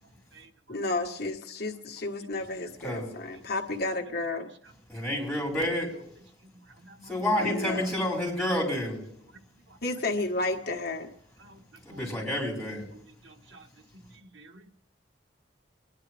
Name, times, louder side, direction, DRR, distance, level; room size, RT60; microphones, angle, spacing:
voice 1, 0.7-4.5 7.4-7.9 9.8-11.1, left 2 dB, 60° left, 3 dB, 1.4 m, -32 dB
voice 2, 4.9-5.9 7.1-9.0 11.8-12.8, left 1 dB, ahead, -3 dB, 5.9 m, -29 dB
voice 3, 6.8-7.2 9.7-9.8 11.4-11.6 11.9-12.4 12.9-13.7 13.9-14.7, right 2 dB, 85° right, 6 dB, 1.2 m, -52 dB
24.5 x 10.5 x 3.4 m, 0.70 s
head